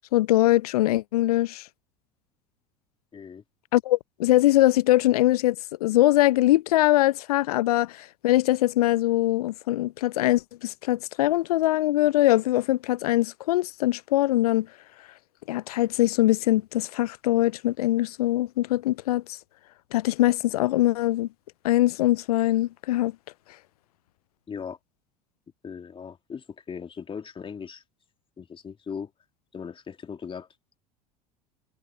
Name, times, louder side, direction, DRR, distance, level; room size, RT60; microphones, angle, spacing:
voice 1, 0.1-1.7 3.7-5.6 5.8-14.7 15.5-19.4 19.9-21.3 21.6-23.1, left 16 dB, 70° left, 0.4 m, -22 dB
voice 2, 3.1-3.4 24.5-24.8 25.6-27.8 28.4-29.1 29.5-30.5, left 6 dB, 25° left, 2.9 m, -38 dB
figure-of-eight pair, 75°, 20 cm